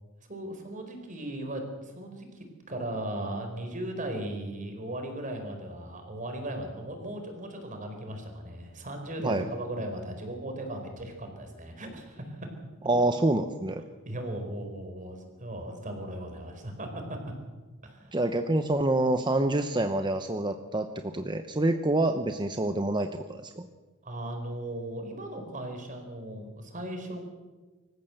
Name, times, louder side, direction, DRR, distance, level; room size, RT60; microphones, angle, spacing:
voice 1, 0.3-12.4 14.0-17.2 17.8-18.1 24.0-27.2, right 1 dB, 40° right, 4 dB, 4.7 m, -37 dB
voice 2, 12.8-13.8 18.1-23.6, right 2 dB, 20° right, 7 dB, 0.9 m, -27 dB
25.5 x 15.0 x 7.9 m, 1.3 s
head